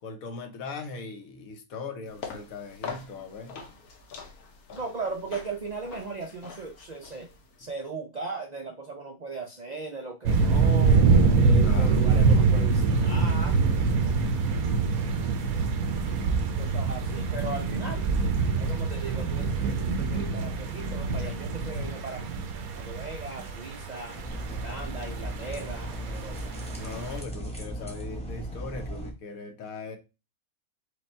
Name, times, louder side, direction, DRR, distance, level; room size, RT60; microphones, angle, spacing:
voice 1, 0.0-3.6 11.6-12.1 26.8-30.0, left 3 dB, 70° left, 1.2 m, -39 dB
sound 1, 2.1-7.7, left 6 dB, 85° left, 1.5 m, -43 dB
voice 2, 4.7-7.3 7.6-11.0 11.3-13.6 16.4-18.0 18.6-22.3 22.8-24.2 24.5-26.6, right 3 dB, 60° right, 0.4 m, -38 dB
sound 2, 10.3-27.2, right 4 dB, 75° right, 1.2 m, -25 dB
sound 3, 24.1-29.1, equal, 5° left, 0.8 m, -37 dB
5.1 x 2.3 x 4.3 m
omnidirectional pair, 1.5 m